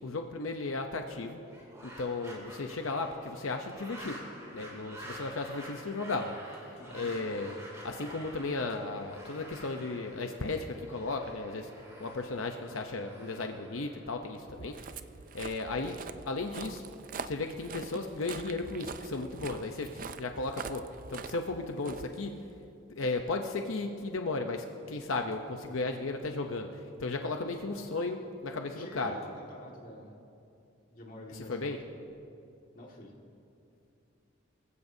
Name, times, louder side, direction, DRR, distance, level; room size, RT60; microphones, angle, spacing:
voice 1, 0.0-1.4 1.8-4.2 4.5-7.5 7.8-11.7 12.0-14.8 15.3-16.0 16.3-16.8 17.2-22.3 22.9-29.2 31.3-31.8, left 3 dB, 90° left, 4 dB, 0.8 m, -35 dB
sound 1, 1.4-14.6, right 1 dB, 15° right, 3.7 m, -49 dB
voice 2, 6.8-7.1 28.7-30.1 30.9-31.9 32.7-33.1, left 1 dB, 45° left, -1 dB, 1.9 m, -47 dB
Walk footsteps, 14.4-22.7, right 5 dB, 45° right, 0.4 m, -44 dB
24.5 x 15.0 x 2.8 m, 2.7 s
head